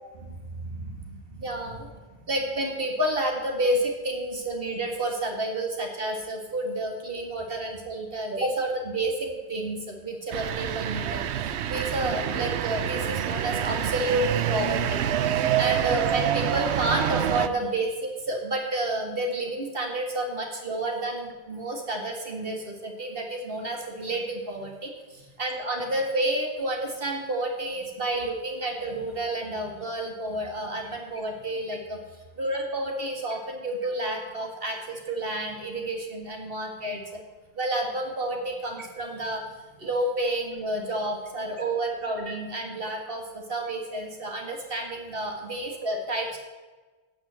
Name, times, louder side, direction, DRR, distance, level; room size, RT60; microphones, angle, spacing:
voice 1, 0.3-15.1 15.3-32.0 32.4-37.2 37.5-46.4, right 1 dB, 60° right, 2 dB, 2.0 m, -30 dB
sound 1, 10.3-17.5, right 10 dB, 90° right, 0.9 m, -27 dB
16.0 x 5.6 x 7.4 m, 1.3 s
omnidirectional pair, 1.1 m